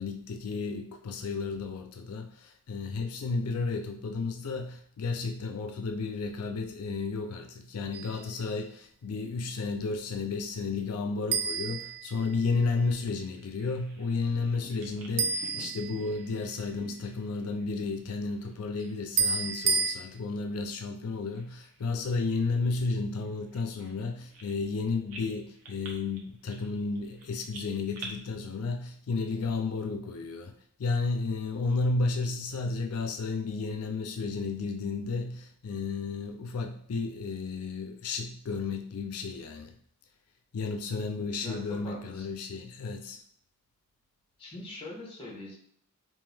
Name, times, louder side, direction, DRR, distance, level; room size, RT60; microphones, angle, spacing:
voice 1, 0.0-30.5 30.8-39.8 40.5-43.2, left 4 dB, 90° left, 0.4 m, -32 dB
sound 1, 7.9-8.3 11.3-12.7 15.2-16.5 19.2-19.9, right 5 dB, 50° right, 0.4 m, -30 dB
Bird vocalization bird call bird song, 13.1-19.0 19.3-20.2 20.5-20.7 21.3-24.8 25.1-28.1, right 3 dB, 80° right, 0.8 m, -50 dB
voice 2, 41.2-42.3 44.4-45.5, left 1 dB, 25° left, 1.1 m, -43 dB
3.6 x 2.7 x 3.3 m
head